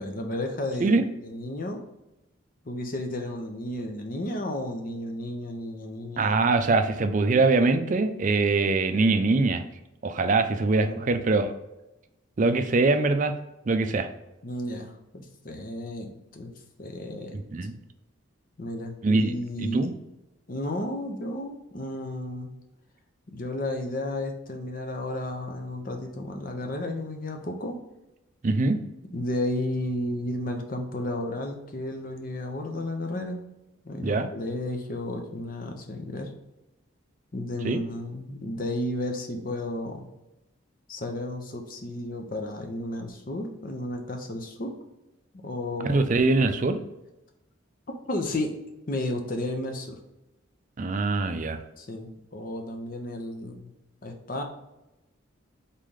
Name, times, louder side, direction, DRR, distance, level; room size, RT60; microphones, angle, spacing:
voice 1, 0.0-1.8 2.6-6.4 10.7-11.0 14.4-16.5 16.8-17.4 18.6-19.9 20.5-22.5 23.3-27.8 29.1-33.4 33.8-36.3 37.3-40.1 40.9-44.7 45.4-46.0 48.1-48.5 48.9-50.0 51.8-53.7 54.0-54.4, left 1 dB, 40° left, 4 dB, 0.7 m, -33 dB
voice 2, 6.2-9.6 10.0-11.5 12.4-13.3 13.7-14.1 17.3-17.7 19.0-19.9 28.4-28.8 34.0-34.3 37.6-37.8 45.9-46.8 50.8-51.6, right 3 dB, 40° right, 8 dB, 0.4 m, -23 dB
4.1 x 3.2 x 3.7 m, 0.94 s
head